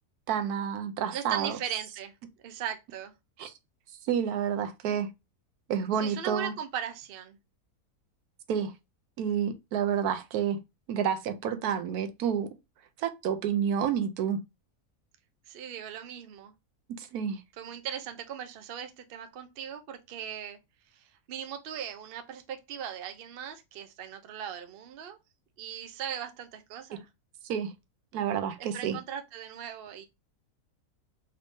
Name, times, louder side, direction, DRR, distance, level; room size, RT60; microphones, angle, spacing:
voice 1, 0.3-1.6 3.4-3.5 4.0-5.1 5.7-6.5 8.5-8.7 9.2-10.6 10.9-12.5 13.0-14.4 17.0-17.4 26.9-27.0 27.4-27.7 28.1-29.0, right 8 dB, 75° right, 1.1 m, -29 dB
voice 2, 1.1-2.1 2.4-3.1 6.0-7.4 15.5-16.5 17.6-20.6 20.9-25.2 25.6-27.1 28.6-30.1, right 9 dB, 55° right, 0.6 m, -38 dB
4.0 x 2.6 x 3.5 m
omnidirectional pair, 1.6 m